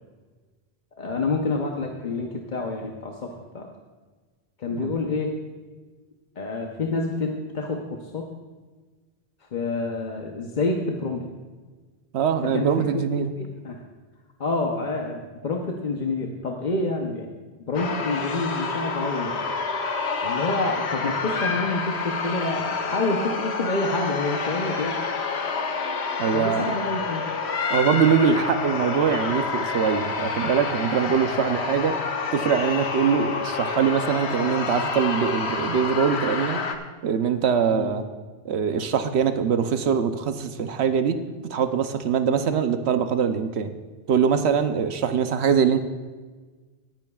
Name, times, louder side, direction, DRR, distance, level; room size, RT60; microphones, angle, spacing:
voice 1, 1.0-3.7 4.6-5.4 6.4-8.3 9.5-11.3 12.5-13.1 13.4-13.8 14.4-17.3 17.7-19.4 20.2-25.0 26.3-27.3 37.7-37.9 42.2-42.4 45.1-45.2, left 3 dB, 50° left, 1 dB, 0.9 m, -28 dB
voice 2, 12.1-13.3 26.2-26.8 27.7-31.9 32.3-36.6 37.0-38.0 38.4-41.2 41.5-43.7 44.1-45.8, right 7 dB, 80° right, 9 dB, 1.0 m, -23 dB
sound 1, 17.7-36.7, left 4 dB, 80° left, 1.1 m, -28 dB
17.5 x 10.5 x 2.3 m, 1.4 s
omnidirectional pair, 1.1 m